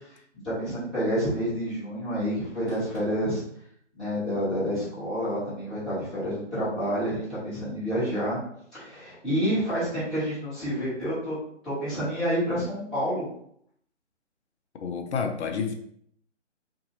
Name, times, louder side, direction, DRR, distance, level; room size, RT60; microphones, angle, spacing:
voice 1, 0.4-3.4 4.0-8.4 8.7-11.4 11.6-13.3, equal, ahead, -17 dB, 0.8 m, -28 dB
voice 2, 14.8-15.7, left 5 dB, 60° left, 5 dB, 0.6 m, -29 dB
2.7 x 2.6 x 2.7 m, 0.68 s
figure-of-eight pair, 155°, 37 cm